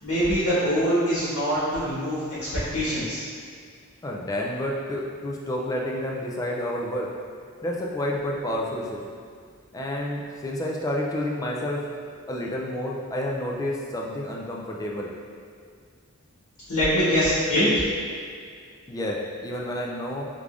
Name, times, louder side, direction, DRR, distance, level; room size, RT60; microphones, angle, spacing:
voice 1, 0.0-3.2 16.7-17.7, equal, 85° left, -12 dB, 1.2 m, -24 dB
voice 2, 4.0-7.1 7.6-9.0 9.7-11.8 12.3-15.1 18.9-20.3, left 1 dB, 15° left, -2 dB, 0.3 m, -29 dB
3.6 x 3.3 x 2.4 m, 2.1 s
head